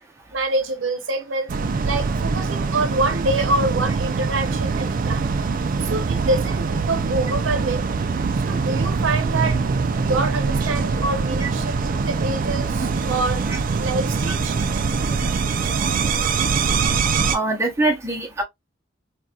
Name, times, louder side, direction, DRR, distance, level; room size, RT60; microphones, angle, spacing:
voice 1, 0.3-1.5 1.8-5.3 5.8-7.9 8.4-9.6 10.0-13.5 13.8-14.6, right 2 dB, 80° right, 0.7 m, -26 dB
sound 1, 1.5-17.4, right 4 dB, 45° right, 0.4 m, -23 dB
voice 2, 17.3-18.4, right 2 dB, 15° right, 0.8 m, -23 dB
4.0 x 2.3 x 2.3 m
head